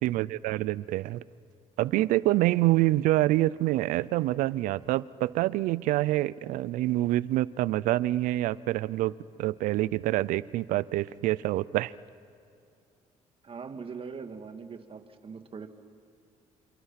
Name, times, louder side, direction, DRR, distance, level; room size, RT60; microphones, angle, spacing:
voice 1, 0.0-1.2 1.8-9.1 9.4-11.9, right 16 dB, 80° right, 20 dB, 0.6 m, -26 dB
voice 2, 13.4-15.7, right 5 dB, 45° right, 7 dB, 2.2 m, -41 dB
29.5 x 27.5 x 5.9 m, 2.5 s
supercardioid pair, 70°, 13 cm